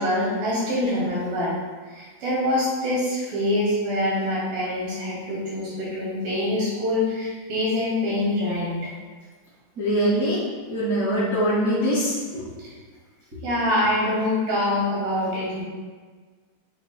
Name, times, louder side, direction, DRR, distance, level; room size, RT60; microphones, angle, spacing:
voice 1, 0.0-1.5 1.9-8.7 12.6-12.7 13.4-15.6, left 1 dB, 55° right, -7 dB, 3.7 m, -25 dB
voice 2, 9.8-10.4 10.7-12.4, equal, 40° right, -12 dB, 1.4 m, -23 dB
8.3 x 7.4 x 2.2 m, 1.5 s
omnidirectional pair, 5.5 m